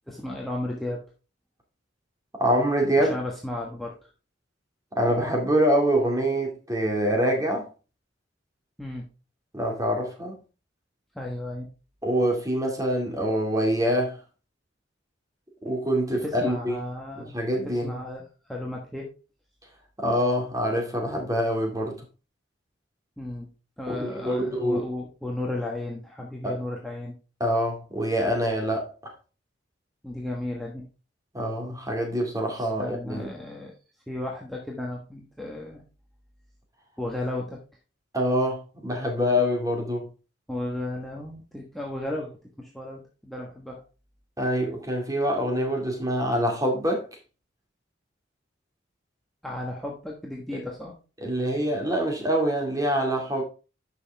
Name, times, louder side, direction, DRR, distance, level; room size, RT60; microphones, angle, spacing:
voice 1, 0.1-1.0 3.0-4.1 8.8-9.1 11.1-11.7 16.2-17.3 17.6-19.1 23.2-23.5 23.8-27.2 30.0-30.9 32.5-33.7 34.1-35.8 37.0-37.6 40.5-42.3 42.6-43.8 49.4-50.9, left 1 dB, ahead, 1.3 m, -34 dB
voice 2, 2.4-3.2 5.0-7.7 9.5-10.4 12.0-14.2 15.6-16.5 17.3-18.0 20.0-22.0 23.9-24.9 26.4-26.6 27.4-29.1 31.3-33.3 38.1-40.1 44.4-47.1 51.2-53.4, equal, 20° right, 2.3 m, -25 dB
11.0 x 6.1 x 3.4 m
head